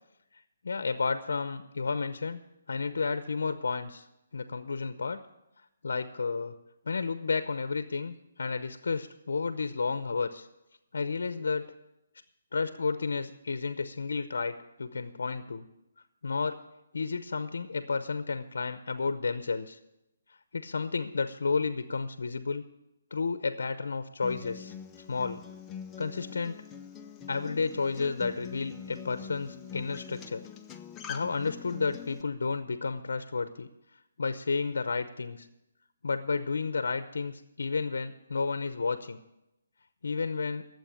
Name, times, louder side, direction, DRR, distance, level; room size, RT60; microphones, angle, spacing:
voice 1, 0.6-2.4 2.7-4.1 4.3-5.2 5.8-6.6 6.9-10.5 10.9-11.7 12.5-15.7 16.2-16.6 16.9-19.8 20.5-22.6 23.1-24.7 25.1-25.4 26.0-26.6 27.3-30.5 31.1-33.7 34.2-35.5 36.0-39.2 40.0-40.7, left 4 dB, 80° left, 11 dB, 0.8 m, -31 dB
Acoustic guitar, 24.2-32.2, left 7 dB, 15° left, 0.6 m, -44 dB
12.0 x 7.8 x 8.4 m, 0.90 s
hypercardioid pair, 160°, 0 cm